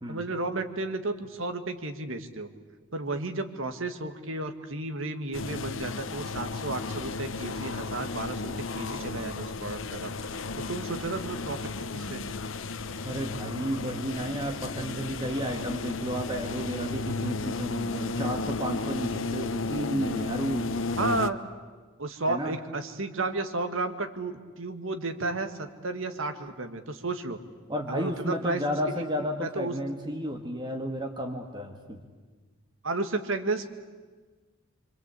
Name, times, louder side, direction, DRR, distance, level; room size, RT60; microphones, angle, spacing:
voice 1, 0.1-2.5 2.9-10.1 10.7-11.6 11.9-12.3 21.0-21.4 22.0-27.4 27.9-28.6 28.9-29.0 29.4-29.7 32.8-33.7, right 2 dB, 75° right, 7 dB, 1.9 m, -32 dB
sound 1, 5.3-21.3, left 3 dB, 65° left, 0.9 m, -34 dB
voice 2, 13.0-20.7 22.3-22.6 27.7-32.0, equal, 20° right, 4 dB, 1.8 m, -32 dB
25.5 x 25.5 x 8.4 m, 1.4 s
head